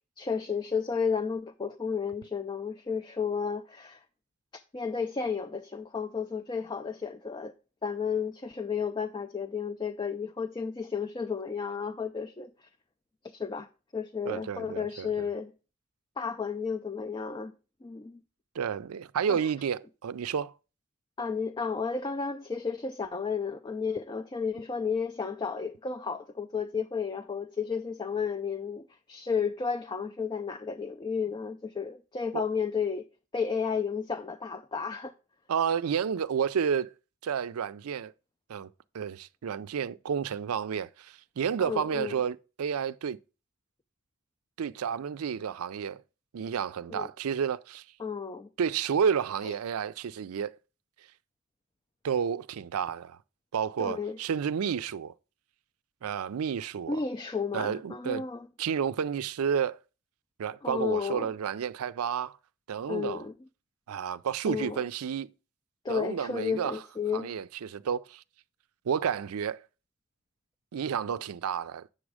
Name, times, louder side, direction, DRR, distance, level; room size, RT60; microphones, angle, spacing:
voice 1, 0.2-4.0 4.7-7.5 7.8-12.7 13.3-13.7 13.9-15.5 16.2-17.5 17.8-18.2 19.3-19.4 21.2-33.1 33.3-35.1 41.6-42.1 46.9-47.1 48.0-48.5 49.4-49.5 53.8-54.2 56.9-58.5 60.6-61.3 62.9-63.3 64.5-64.8 65.8-67.3, left 5 dB, 20° left, 0.3 m, -32 dB
voice 2, 14.2-15.3 18.5-20.5 32.3-32.4 35.5-36.9 37.2-38.1 38.5-38.7 38.9-43.2 44.6-46.0 46.3-47.8 48.6-50.6 52.0-53.2 53.5-55.1 56.0-57.0 57.5-58.2 58.6-59.8 60.4-62.4 62.7-63.2 63.9-65.3 65.9-66.8 67.1-68.2 68.9-69.6 70.7-71.9, right 7 dB, 85° right, 0.4 m, -31 dB
7.8 x 6.2 x 4.8 m
head